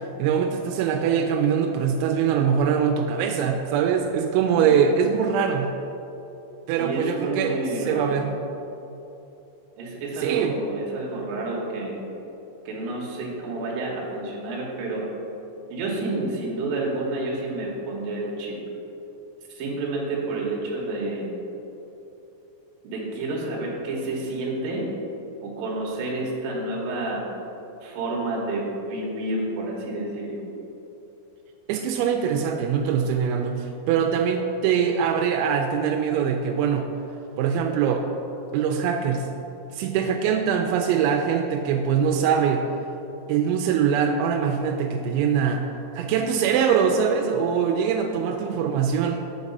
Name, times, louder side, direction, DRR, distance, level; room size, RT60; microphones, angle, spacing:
voice 1, 0.2-5.7 6.7-7.6 7.9-8.4 10.2-10.5 31.7-36.8 37.4-38.1 38.5-39.2 39.7-42.6 43.3-45.7 46.0-49.2, right 7 dB, 85° right, 3 dB, 2.9 m, -23 dB
voice 2, 6.7-8.2 9.8-12.0 12.7-15.0 15.7-18.6 19.5-21.3 22.8-24.8 25.4-27.2 27.8-30.4, right 2 dB, 65° right, -3 dB, 2.7 m, -29 dB
8.3 x 5.2 x 5.3 m, 2.9 s
omnidirectional pair, 5.2 m